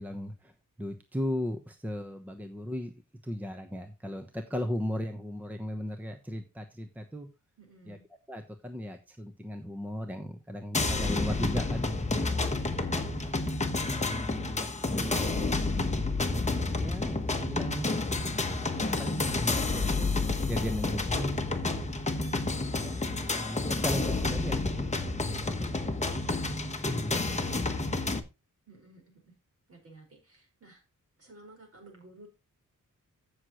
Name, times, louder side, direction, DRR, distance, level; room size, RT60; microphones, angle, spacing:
voice 1, 0.0-2.9 3.2-7.3 7.9-8.0 8.3-11.9 13.5-16.0 16.8-17.9 19.0-21.5 22.8-26.0 26.6-27.3, equal, 5° right, 6 dB, 0.9 m, -37 dB
voice 2, 7.6-8.0 12.5-13.4 28.7-29.3 29.7-30.8 31.2-32.3, right 3 dB, 45° right, 1 dB, 5.1 m, -54 dB
sound 1, 10.7-28.2, left 3 dB, 20° left, 1.1 m, -30 dB
15.5 x 6.4 x 3.0 m, 0.26 s
wide cardioid pair, 155°, 32 cm